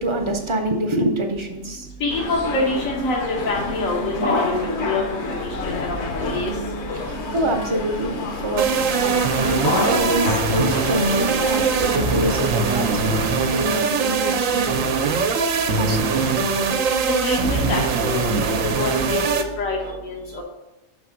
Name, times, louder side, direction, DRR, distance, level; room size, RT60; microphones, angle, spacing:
voice 1, 0.0-1.9 6.9-13.0 13.4-14.9 15.7-16.3 19.8-19.9, right 1 dB, 30° right, 4 dB, 0.5 m, -26 dB
voice 2, 2.0-4.5 4.9-5.0 5.6-6.5 17.0-19.2 19.6-20.4, left 2 dB, 80° left, -1 dB, 1.4 m, -25 dB
sound 1, 2.1-13.3, left 2 dB, 60° left, 1.1 m, -28 dB
sound 2, 8.6-19.4, right 5 dB, 80° right, 1.1 m, -22 dB
5.8 x 4.0 x 6.1 m, 0.98 s
omnidirectional pair, 1.4 m